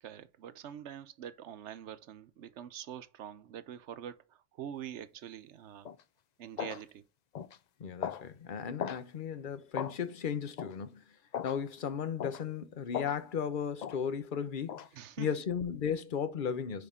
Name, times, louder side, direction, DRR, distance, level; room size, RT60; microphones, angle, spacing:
voice 1, 0.0-5.9 6.4-7.0 14.9-15.3, right 9 dB, 70° right, 0.9 m, -45 dB
sound 1, 5.8-6.0 6.6-6.8 7.3-7.6 8.0-8.2 8.8-9.0 9.7-10.0 10.6-10.8 11.3-11.6 12.2-12.4 12.9-13.2 13.8-14.0 14.7-14.9, left 8 dB, 70° left, 0.4 m, -37 dB
voice 2, 7.8-11.2 11.4-14.8 15.2-16.9, left 7 dB, 50° left, 0.8 m, -35 dB
9.6 x 3.6 x 3.6 m
omnidirectional pair, 1.3 m